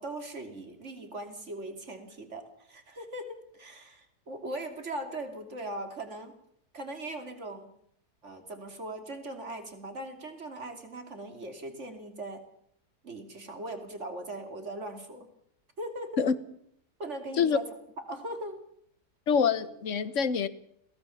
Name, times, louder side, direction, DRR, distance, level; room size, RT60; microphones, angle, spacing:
voice 1, 0.0-6.3 6.7-7.7 8.2-12.4 13.0-15.3 15.8-16.3 17.0-17.7 18.0-18.6, right 1 dB, 45° right, 6 dB, 3.2 m, -39 dB
voice 2, 19.3-20.5, left 6 dB, 50° left, 15 dB, 1.4 m, -25 dB
22.0 x 18.0 x 7.1 m, 0.70 s
omnidirectional pair, 1.7 m